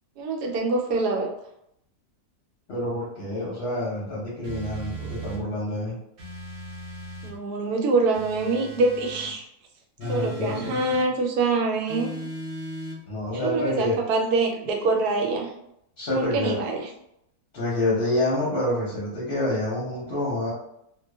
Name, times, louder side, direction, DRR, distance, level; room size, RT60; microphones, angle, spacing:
voice 1, 0.2-1.3 7.2-9.4 10.1-12.1 13.3-15.5 16.1-16.9, right 3 dB, 85° right, 1 dB, 1.1 m, -25 dB
voice 2, 2.7-5.9 10.0-10.8 13.1-14.0 16.0-16.6 17.5-20.5, left 1 dB, 55° left, -6 dB, 0.8 m, -27 dB
sound 1, 4.4-5.4 6.2-7.4 8.1-9.3 10.0-11.1 11.9-13.0, right 2 dB, 60° right, 0.6 m, -38 dB
2.5 x 2.2 x 2.2 m, 0.78 s
omnidirectional pair, 1.6 m